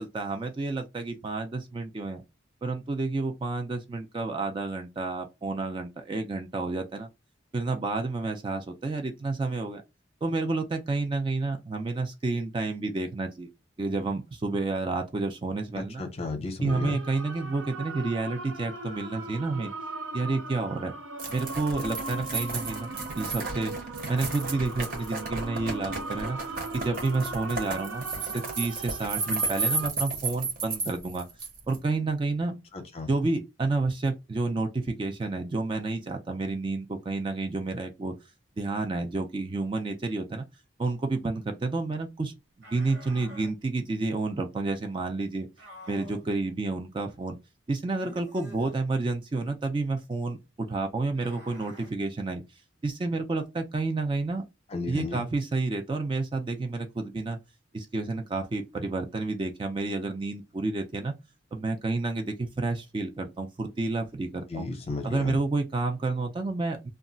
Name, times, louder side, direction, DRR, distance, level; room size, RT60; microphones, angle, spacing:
voice 1, 0.0-2.2 2.6-7.1 7.5-9.8 10.2-13.5 13.8-16.0 16.6-19.7 20.1-20.9 21.3-23.7 24.1-26.4 26.7-31.3 31.7-32.6 33.1-38.2 38.6-40.4 40.8-42.3 42.7-45.5 45.9-47.4 47.7-52.4 52.8-54.4 54.9-57.4 57.7-61.1 61.5-64.6 65.0-66.9, right 3 dB, 25° right, 0.3 m, -30 dB
voice 2, 15.7-17.0 32.7-33.1 54.7-55.3 64.5-65.4, left 2 dB, 30° left, 0.6 m, -33 dB
sound 1, 16.7-29.9, right 2 dB, 90° right, 0.6 m, -39 dB
sound 2, 21.2-31.8, right 3 dB, 45° right, 0.8 m, -33 dB
sound 3, 42.6-43.5 45.6-46.3 47.9-48.8 51.1-51.9, equal, 65° right, 1.1 m, -48 dB
2.2 x 2.0 x 3.7 m
head